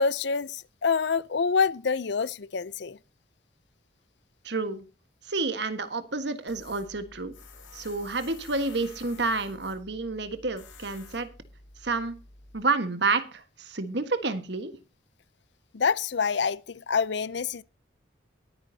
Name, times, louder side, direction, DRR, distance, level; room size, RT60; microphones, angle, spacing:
voice 1, 0.0-3.0 15.7-17.6, left 5 dB, 60° left, 0.5 m, -26 dB
voice 2, 4.4-4.8 5.3-7.4 7.7-11.3 11.8-12.1 12.5-14.8, right 3 dB, 60° right, 1.5 m, -29 dB
Tools, 6.5-12.6, left 3 dB, 90° left, 5.6 m, -50 dB
22.0 x 9.4 x 2.8 m
head